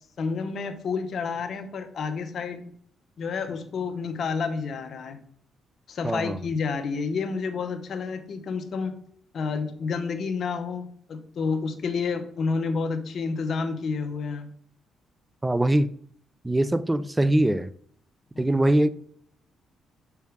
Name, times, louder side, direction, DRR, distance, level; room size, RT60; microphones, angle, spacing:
voice 1, 0.2-2.7 3.2-5.2 5.9-9.0 9.3-14.5 18.3-18.5, left 5 dB, 55° left, 0.9 m, -30 dB
voice 2, 6.0-6.4 15.4-15.9 16.4-17.7 18.4-18.9, right 1 dB, 15° right, 0.4 m, -22 dB
6.8 x 4.6 x 3.5 m
cardioid pair, 90°, 0 cm